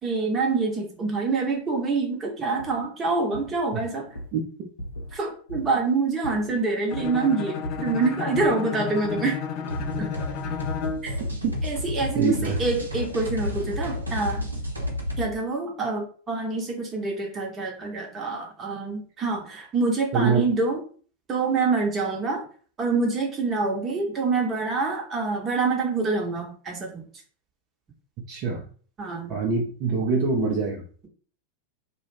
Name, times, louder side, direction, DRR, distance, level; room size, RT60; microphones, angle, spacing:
voice 1, 0.0-4.2 5.1-9.4 11.0-11.1 11.6-14.4 15.2-20.8 21.3-22.4 22.8-27.1 29.0-29.4, right 3 dB, 20° right, 0 dB, 0.9 m, -26 dB
sound 1, 2.6-2.8 3.3-3.6 4.1-4.3 4.8-5.2 5.5-5.8 6.2-7.3 7.6-8.6 9.0-9.3 9.8-10.8 11.2-11.6 11.9-12.9 13.4-13.7 14.0-14.5 14.8-15.1, equal, 80° left, 0.7 m, -39 dB
Bowed string instrument, 6.9-11.1, left 7 dB, 40° left, 0.4 m, -32 dB
sound 2, 9.7-15.3, left 1 dB, 80° right, 0.6 m, -31 dB
voice 2, 12.2-12.6 20.1-20.5 28.3-28.7 29.3-30.9, right 4 dB, 40° right, -3 dB, 0.6 m, -24 dB
2.3 x 2.1 x 3.2 m, 0.42 s
figure-of-eight pair, 90°, 0 cm